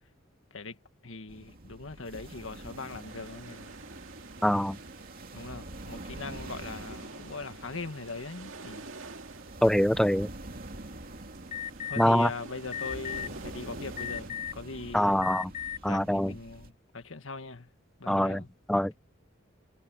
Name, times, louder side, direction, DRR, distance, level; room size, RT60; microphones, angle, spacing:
voice 1, 1.0-3.8 5.3-8.9 11.9-15.3 15.9-17.7 18.0-18.5, left 3 dB, 85° left, 1.7 m, -41 dB
sound 1, 1.3-16.7, right 2 dB, 50° right, 2.6 m, -46 dB
sound 2, 2.2-14.3, right 3 dB, 80° right, 2.2 m, -48 dB
voice 2, 4.4-4.8 9.6-10.3 12.0-12.3 14.9-15.5 15.8-16.3 18.1-18.4 18.7-19.0, equal, 5° left, 0.5 m, -24 dB
Alarm, 11.5-12.0 12.7-13.3 14.0-14.6 15.2-15.8, left 9 dB, 40° left, 2.2 m, -35 dB
head